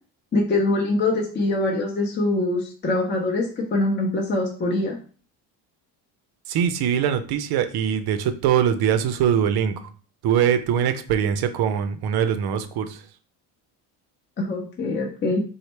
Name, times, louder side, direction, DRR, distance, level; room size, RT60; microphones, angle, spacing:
voice 1, 0.3-5.0 14.4-15.4, left 2 dB, 25° left, -1 dB, 0.6 m, -23 dB
voice 2, 6.5-9.8 10.2-13.0, right 8 dB, 55° right, 10 dB, 0.6 m, -22 dB
4.0 x 2.1 x 3.2 m, 0.41 s
supercardioid pair, 95°, 48 cm